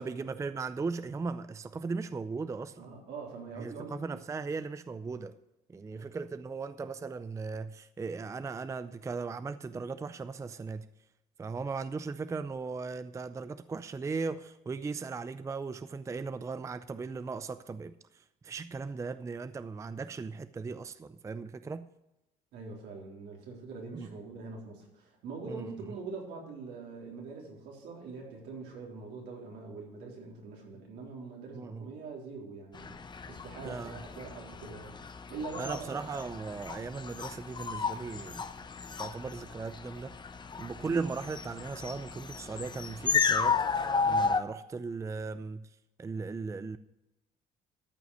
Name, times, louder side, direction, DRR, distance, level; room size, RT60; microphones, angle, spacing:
voice 1, 0.0-2.9 3.6-5.4 5.7-10.9 11.4-21.9 23.9-24.1 25.5-25.7 31.5-31.9 33.6-34.0 35.6-38.4 39.0-40.1 40.6-45.7 46.0-46.8, right 4 dB, 20° right, 0.4 m, -37 dB
voice 2, 2.8-4.0 5.8-6.0 22.5-35.9, right 4 dB, 80° right, 3.7 m, -43 dB
sound 1, 32.7-44.4, left 5 dB, 25° left, 0.8 m, -33 dB
13.0 x 5.8 x 6.3 m
cardioid pair, 110°, 17 cm